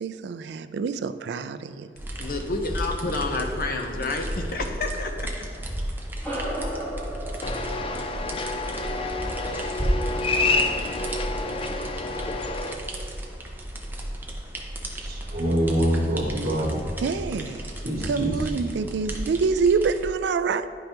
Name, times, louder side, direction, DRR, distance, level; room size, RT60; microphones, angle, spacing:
voice 1, 0.0-1.9 17.0-17.6 18.0-20.7, right 5 dB, 70° right, 12 dB, 0.3 m, -26 dB
sound 1, 2.0-20.1, right 1 dB, 10° right, 0.6 m, -34 dB
voice 2, 2.2-5.3, left 3 dB, 55° left, 4 dB, 0.7 m, -29 dB
sound 2, 6.2-11.0, right 1 dB, 10° left, 1.3 m, -37 dB
sound 3, 7.4-12.7, left 2 dB, 30° left, 0.4 m, -28 dB
voice 3, 15.0-16.9 17.8-18.5, equal, 55° right, -5 dB, 1.4 m, -25 dB
10.0 x 5.4 x 2.9 m, 2.4 s
head